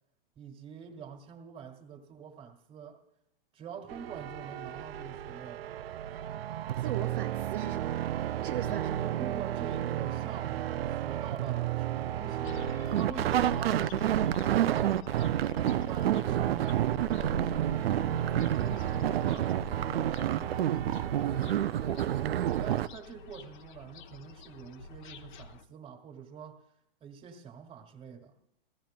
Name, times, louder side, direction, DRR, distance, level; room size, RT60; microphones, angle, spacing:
voice 1, 0.4-3.0 3.5-5.7 8.9-12.6 12.9-15.0 15.5-19.5 19.9-22.0 22.6-26.6 27.0-28.3, right 6 dB, 20° right, 1.9 m, -46 dB
sound 1, 3.9-22.9, right 11 dB, 85° right, 0.5 m, -30 dB
voice 2, 6.8-8.0 8.4-9.0, right 10 dB, 60° right, 0.9 m, -38 dB
sound 2, 12.4-25.6, left 3 dB, 55° left, 1.0 m, -45 dB
20.0 x 16.0 x 2.2 m
hypercardioid pair, 135°, 29 cm